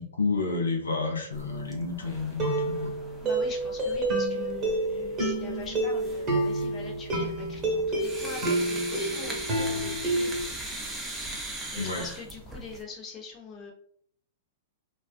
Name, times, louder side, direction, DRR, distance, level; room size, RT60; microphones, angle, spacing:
voice 1, 0.0-2.9 11.8-12.1, left 4 dB, 85° left, 1 dB, 0.5 m, -30 dB
sound 1, 1.3-12.8, right 1 dB, 10° right, 0.6 m, -40 dB
sound 2, 1.5-1.8 2.4-10.4, right 2 dB, 30° right, 1.1 m, -29 dB
voice 2, 3.2-10.3 11.7-13.7, left 4 dB, 25° left, -2 dB, 0.8 m, -43 dB
2.3 x 2.3 x 2.4 m, 0.62 s
hypercardioid pair, 110°, 0 cm